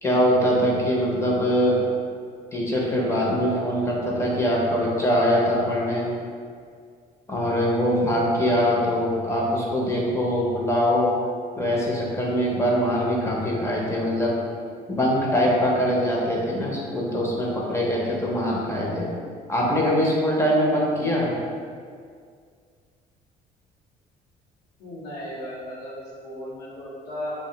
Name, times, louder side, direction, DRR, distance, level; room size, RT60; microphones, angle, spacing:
voice 1, 0.0-1.8 2.5-6.1 7.3-11.1 11.6-14.4 14.9-19.1 19.5-21.4, equal, 15° left, -4 dB, 0.6 m, -23 dB
voice 2, 24.8-27.4, equal, 85° left, -6 dB, 0.8 m, -35 dB
2.4 x 2.1 x 3.8 m, 2.1 s
cardioid pair, 110°, 17 cm